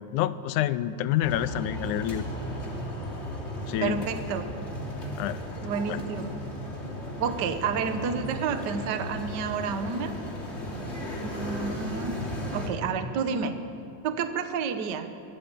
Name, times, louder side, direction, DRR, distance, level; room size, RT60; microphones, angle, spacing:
voice 1, 0.1-2.3 3.7-4.1 5.2-5.4 5.9-6.0, left 12 dB, 80° left, 15 dB, 2.0 m, -27 dB
sound 1, 1.2-12.7, equal, 20° left, 2.7 m, -35 dB
voice 2, 3.8-4.4 5.6-6.3 7.2-10.1 11.2-12.1 12.5-13.5 14.0-15.1, right 6 dB, 80° right, 8 dB, 0.9 m, -30 dB
24.0 x 14.0 x 8.2 m, 2.6 s
omnidirectional pair, 3.8 m